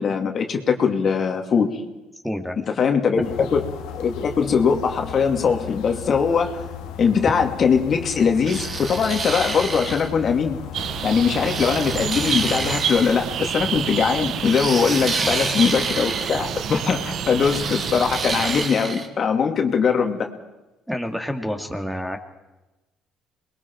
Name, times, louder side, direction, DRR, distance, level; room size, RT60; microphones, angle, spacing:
voice 1, 0.0-1.8 2.7-3.6 3.9-6.6 7.0-10.6 11.0-20.3, left 6 dB, 50° left, 4 dB, 2.4 m, -21 dB
voice 2, 2.2-2.6 15.2-15.5 20.9-22.2, equal, ahead, 5 dB, 2.4 m, -28 dB
sound 1, 3.2-12.9, left 10 dB, 80° left, 1.8 m, -36 dB
sound 2, 8.5-10.1 11.4-13.2 14.4-16.4 17.4-19.1, right 4 dB, 40° right, 2.7 m, -29 dB
sound 3, 10.7-18.7, right 8 dB, 60° right, 1.0 m, -28 dB
27.0 x 21.0 x 4.6 m, 1.0 s
supercardioid pair, 65°, 0 cm